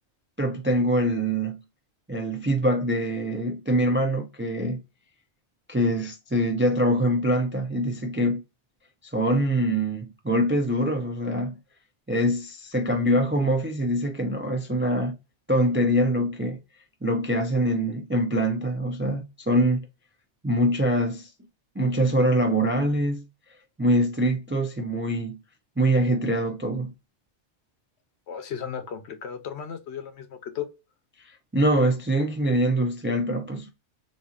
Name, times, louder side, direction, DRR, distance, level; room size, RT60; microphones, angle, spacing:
voice 1, 0.4-1.6 2.1-4.8 5.7-8.4 9.1-11.6 12.1-15.1 15.5-16.6 17.0-19.9 20.4-21.3 21.8-23.2 23.8-25.4 25.8-26.9 31.2-33.7, right 1 dB, 20° right, 0.3 m, -24 dB
voice 2, 28.3-30.7, left 8 dB, 70° left, 0.9 m, -35 dB
4.1 x 2.7 x 2.4 m
omnidirectional pair, 1.2 m